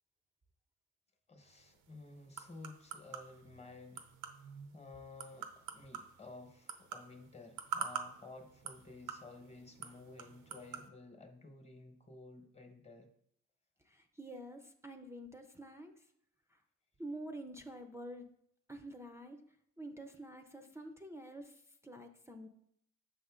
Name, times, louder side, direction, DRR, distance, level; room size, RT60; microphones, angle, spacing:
voice 1, 1.3-4.1 4.7-13.1, left 3 dB, 20° left, 5 dB, 1.1 m, -53 dB
sound 1, 1.5-10.9, right 8 dB, 90° right, 0.7 m, -47 dB
voice 2, 13.8-16.1 16.5-16.6 17.0-18.3 18.7-19.4 19.8-22.5, right 1 dB, 10° right, 5 dB, 0.5 m, -48 dB
6.6 x 5.4 x 3.7 m, 0.71 s
cardioid pair, 90°, 30 cm